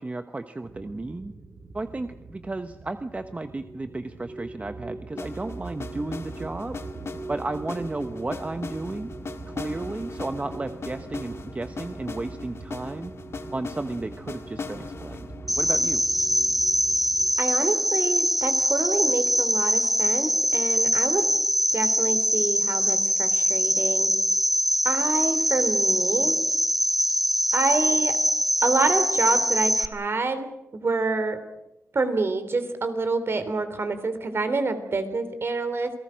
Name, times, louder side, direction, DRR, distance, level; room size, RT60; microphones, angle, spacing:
voice 1, 0.0-1.3 1.7-6.8 7.3-9.1 9.5-13.1 13.5-15.3 15.6-16.0, right 2 dB, 25° right, 8 dB, 1.0 m, -33 dB
sound 1, 0.6-17.3, right 3 dB, 65° right, 7.2 m, -41 dB
sound 2, 5.2-17.1, left 4 dB, 55° left, 2.0 m, -40 dB
Cricket, 15.5-29.9, equal, 5° right, 1.2 m, -23 dB
voice 2, 17.4-21.2 21.7-24.1 24.8-26.3 27.5-28.1 28.6-31.4 31.9-35.9, right 3 dB, 50° right, 9 dB, 3.3 m, -27 dB
28.5 x 18.5 x 6.3 m, 0.93 s
wide cardioid pair, 100°, 5 cm